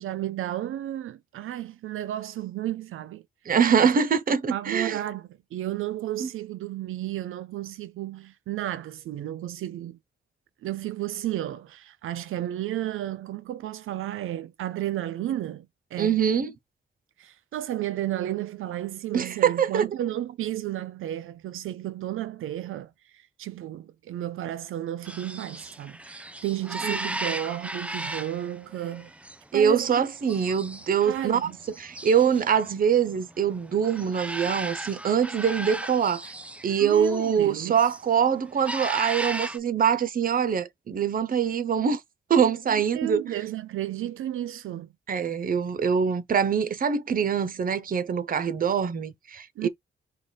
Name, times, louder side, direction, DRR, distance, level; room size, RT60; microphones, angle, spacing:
voice 1, 0.0-3.2 3.8-3.9 4.3-10.0 10.6-16.2 17.2-29.1 29.5-30.1 31.0-31.6 36.8-37.8 42.7-44.9 49.6-49.7, right 13 dB, 80° right, 0.4 m, -33 dB
voice 2, 3.5-5.0 6.2-6.3 16.0-16.5 19.1-19.8 26.8-27.2 29.5-31.4 31.8-36.3 36.6-42.0 42.3-43.2 45.1-49.7, right 7 dB, 45° right, 0.7 m, -24 dB
sound 1, 25.0-37.4 37.6-38.1 38.5-39.6, right 1 dB, 5° right, 0.4 m, -36 dB
4.8 x 2.3 x 3.9 m
cardioid pair, 115°, 21 cm